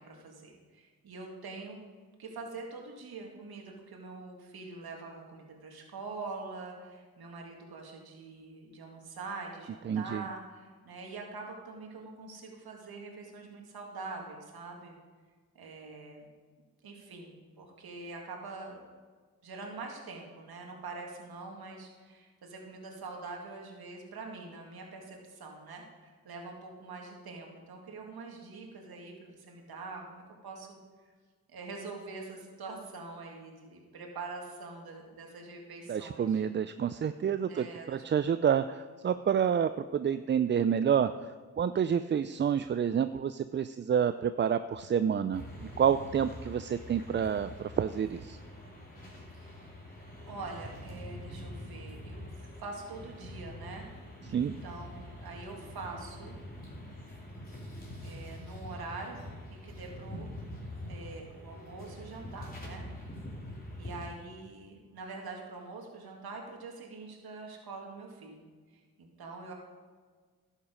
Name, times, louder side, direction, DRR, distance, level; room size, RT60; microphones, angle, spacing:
voice 1, 0.0-1.8 2.2-14.9 15.5-16.3 16.8-18.8 19.4-30.8 31.5-36.4 37.5-38.4 49.3-49.8 50.3-53.9 54.3-56.4 58.0-59.2 59.5-60.3 60.9-62.9 63.8-69.5, right 3 dB, 70° right, 1 dB, 2.2 m, -44 dB
voice 2, 9.9-10.3 35.9-41.1 41.6-45.4 45.8-48.4 54.3-54.6, right 8 dB, 30° right, 12 dB, 0.4 m, -28 dB
sound 1, 45.3-64.1, left 1 dB, 25° left, 3.5 m, -45 dB
11.5 x 7.3 x 5.2 m, 1.5 s
cardioid pair, 60°, 38 cm